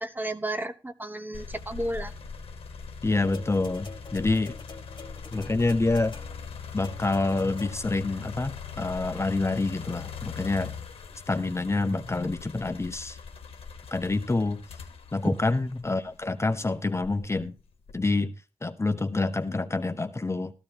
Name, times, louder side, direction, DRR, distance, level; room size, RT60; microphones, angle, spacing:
voice 1, 0.0-2.1 15.2-15.3, right 1 dB, 20° right, 10 dB, 1.0 m, -32 dB
sound 1, 1.3-16.4 17.0-18.2, left 6 dB, 80° left, 1.1 m, -41 dB
voice 2, 3.0-4.5 5.3-6.2 6.7-10.7 11.3-13.2 13.9-14.6 15.1-17.5 17.9-18.3 18.6-20.5, left 3 dB, 30° left, 9 dB, 0.9 m, -27 dB
sound 2, 3.3-8.1 9.1-9.2, left 4 dB, 50° left, 1.6 m, -47 dB
14.0 x 12.5 x 2.9 m, 0.30 s
cardioid pair, 50°, 10 cm